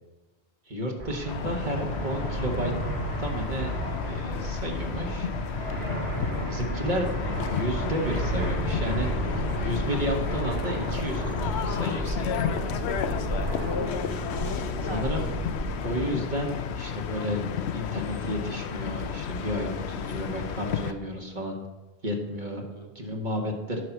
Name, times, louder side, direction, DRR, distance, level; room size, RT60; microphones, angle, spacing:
voice 1, 0.7-2.7 3.2-3.7 4.1-5.3 6.4-7.1 7.4-9.1 9.4-12.4 14.9-15.2 15.8-17.4 17.7-21.5 22.0-22.7 22.9-23.8, equal, 50° right, 1 dB, 1.5 m, -32 dB
Fixed-wing aircraft airplane, 1.0-16.1, right 1 dB, 75° right, 1.9 m, -32 dB
sound 1, 1.3-20.9, left 7 dB, 85° left, 0.9 m, -32 dB
voice 2, 6.1-6.5 13.6-15.1 22.5-22.9, left 1 dB, 30° left, 0 dB, 1.1 m, -40 dB
9.7 x 5.6 x 6.0 m, 1.2 s
omnidirectional pair, 1.1 m